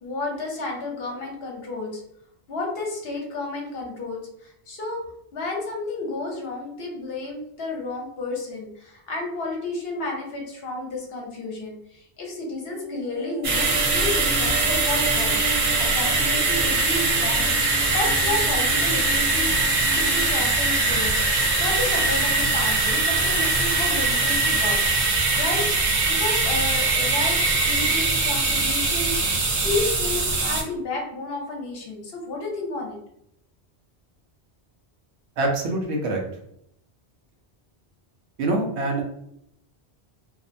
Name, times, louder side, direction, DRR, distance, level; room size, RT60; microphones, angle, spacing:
voice 1, 0.0-2.0 2.5-5.0 5.3-17.6 17.9-21.1 21.6-24.8 25.1-33.0, left 2 dB, 65° left, -1 dB, 0.9 m, -31 dB
sound 1, 12.6-21.1 21.4-21.5, right 4 dB, 35° right, 0.8 m, -36 dB
sound 2, 13.4-30.6, right 3 dB, 50° right, 0.4 m, -22 dB
voice 2, 35.4-36.2 38.4-39.1, right 2 dB, 85° right, 1 dB, 0.9 m, -25 dB
2.7 x 2.0 x 2.6 m, 0.74 s
omnidirectional pair, 1.1 m